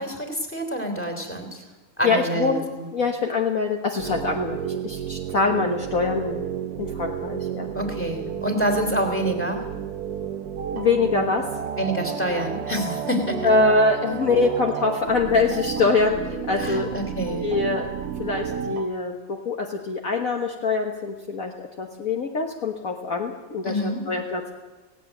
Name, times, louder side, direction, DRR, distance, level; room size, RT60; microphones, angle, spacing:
voice 1, 0.0-1.6 2.0-2.9 7.7-9.7 11.8-13.5 16.6-17.5 23.6-24.0, equal, 5° left, 5 dB, 2.9 m, -27 dB
voice 2, 2.0-2.6 2.9-6.4 6.8-7.7 10.7-11.5 13.4-16.2 16.5-17.0 17.4-17.9 18.2-21.5 21.8-23.7 24.1-24.5, left 3 dB, 50° left, 2 dB, 1.7 m, -24 dB
sound 1, 4.0-18.8, right 9 dB, 60° right, 1.2 m, -32 dB
sound 2, 10.6-18.9, right 5 dB, 85° right, 2.1 m, -35 dB
17.5 x 16.5 x 9.1 m, 1.2 s
omnidirectional pair, 2.0 m